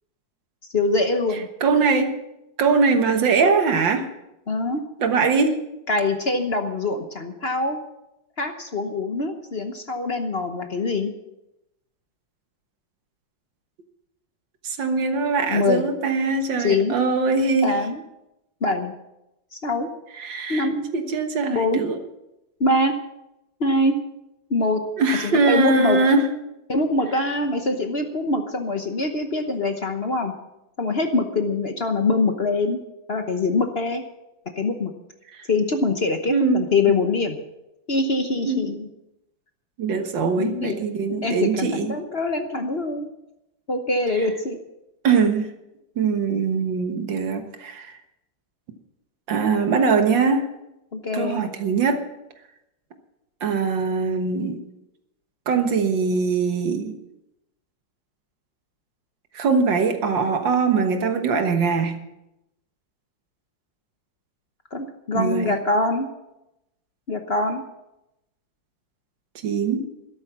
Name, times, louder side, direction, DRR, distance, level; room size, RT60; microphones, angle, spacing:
voice 1, 0.7-1.5 4.5-4.8 5.9-7.8 8.4-11.1 15.5-15.8 16.6-16.9 17.6-18.0 18.6-18.9 19.5-19.9 20.5-20.9 21.5-21.8 22.6-23.0 23.6-24.0 24.5-24.8 25.2-26.0 26.7-30.3 30.8-32.8 33.1-34.0 34.6-34.9 35.5-37.4 37.9-38.9 40.4-40.8 41.2-43.1 43.7-44.6 50.9-51.4 64.7-66.1 67.1-67.6, left 2 dB, 40° left, 6 dB, 1.1 m, -23 dB
voice 2, 1.6-2.1 2.6-4.1 5.0-5.6 14.6-17.8 20.2-22.0 25.0-26.3 35.3-35.4 36.3-37.0 38.5-38.6 39.8-41.9 45.0-45.5 46.0-48.0 49.3-50.5 51.1-52.0 53.4-54.6 55.5-57.0 59.3-62.0 65.1-65.6 69.4-69.9, right 4 dB, 80° right, 6 dB, 2.1 m, -22 dB
13.0 x 12.5 x 6.0 m, 0.90 s
omnidirectional pair, 2.0 m